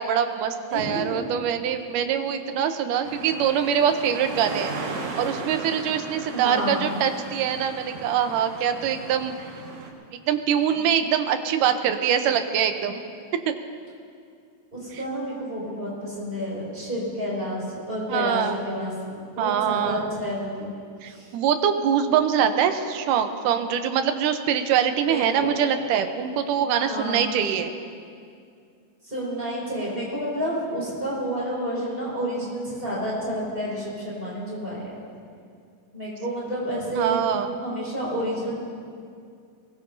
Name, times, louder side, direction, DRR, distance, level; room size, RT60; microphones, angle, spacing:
voice 1, 0.0-4.9 5.2-9.3 10.3-13.0 13.5-13.6 18.1-18.6 19.4-20.0 21.0-27.7 36.9-37.5, right 8 dB, 85° right, 7 dB, 2.4 m, -24 dB
voice 2, 0.7-1.3 3.1-3.3 6.3-6.9 10.7-10.8 14.7-20.7 21.0-21.3 25.1-25.6 26.7-27.3 29.0-34.9 35.9-37.2 37.6-38.5, equal, 15° right, -6 dB, 5.5 m, -30 dB
sound 1, 3.0-9.9, right 3 dB, 65° right, 2.8 m, -36 dB
23.0 x 21.0 x 2.7 m, 2.3 s
omnidirectional pair, 3.7 m